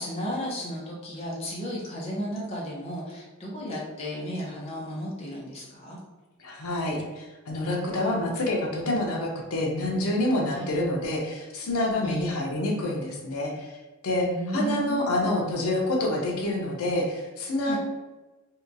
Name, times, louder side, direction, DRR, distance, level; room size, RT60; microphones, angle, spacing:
voice 1, 0.0-6.0 10.5-10.7 12.0-12.4 14.2-15.3 17.6-17.8, equal, 30° left, -4 dB, 0.6 m, -34 dB
voice 2, 6.4-13.7 14.0-14.3 14.5-17.8, left 1 dB, 80° left, 0 dB, 0.5 m, -27 dB
2.7 x 2.2 x 2.5 m, 1.2 s
head